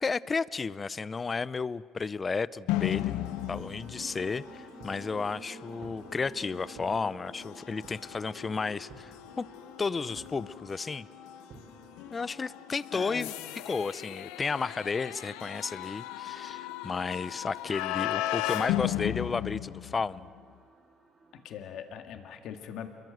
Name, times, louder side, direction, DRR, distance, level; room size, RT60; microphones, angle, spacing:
voice 1, 0.0-9.4 9.8-11.1 12.1-13.3 13.7-20.3, left 4 dB, 25° left, 19 dB, 0.6 m, -33 dB
sound 1, 2.7-20.4, left 15 dB, 90° left, 0.7 m, -36 dB
sound 2, 3.0-21.6, right 4 dB, 30° right, 2.5 m, -54 dB
sound 3, 3.6-3.8 4.4-5.1 5.8-6.1 6.7-7.0 7.8-8.2 8.9-9.2 10.1-10.4 11.5-11.7, right 4 dB, 55° right, 4.3 m, -51 dB
voice 2, 12.9-13.3 21.3-22.9, left 8 dB, 70° left, 6 dB, 1.9 m, -41 dB
28.5 x 22.5 x 7.9 m, 2.2 s
cardioid pair, 105°, 0 cm